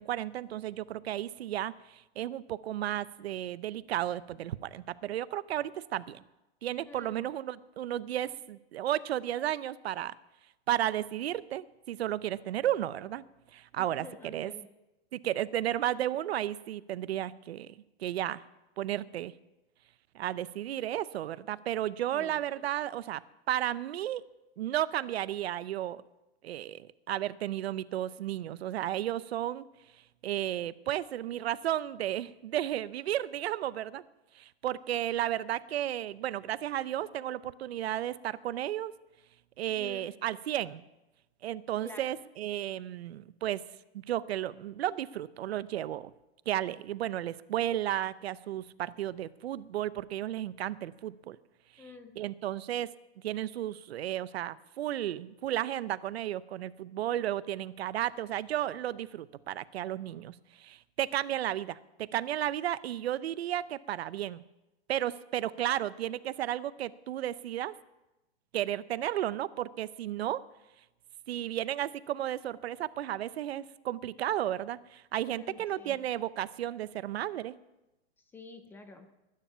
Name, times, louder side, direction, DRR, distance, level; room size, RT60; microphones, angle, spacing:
voice 1, 0.0-6.2 6.6-10.1 10.7-13.2 13.5-14.5 15.1-17.7 18.0-18.4 18.8-19.3 20.1-23.2 23.5-24.2 24.6-26.0 26.4-29.7 30.2-34.0 34.4-38.9 39.6-40.8 41.4-43.6 43.9-46.1 46.5-51.4 52.2-52.9 53.2-64.4 64.9-67.7 68.5-70.4 71.3-77.6, right 12 dB, 70° right, 17 dB, 0.7 m, -33 dB
voice 2, 6.9-7.3 13.8-14.7 22.1-22.4 39.8-40.1 41.8-42.1 51.8-52.2 75.3-76.0 78.3-79.1, left 3 dB, 5° left, 8 dB, 0.5 m, -48 dB
20.0 x 9.9 x 5.6 m, 0.98 s
hypercardioid pair, 160°, 32 cm